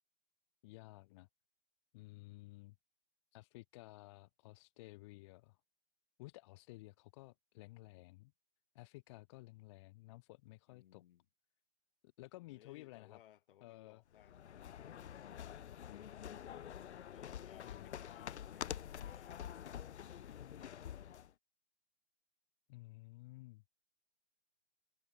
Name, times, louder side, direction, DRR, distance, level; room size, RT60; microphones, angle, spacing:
voice 1, 0.6-1.3 1.9-2.7 3.3-5.6 6.2-8.3 8.7-11.0 12.2-13.2 13.6-14.0 15.9-16.1 17.6-17.9 22.7-23.6, left 21 dB, 25° left, 0.7 m, -55 dB
voice 2, 10.7-11.2 12.5-14.7 17.1-20.9, left 12 dB, 50° left, 3.0 m, -64 dB
sound 1, 14.1-21.3, left 9 dB, 70° left, 0.8 m, -47 dB
hypercardioid pair, 140°, 35 cm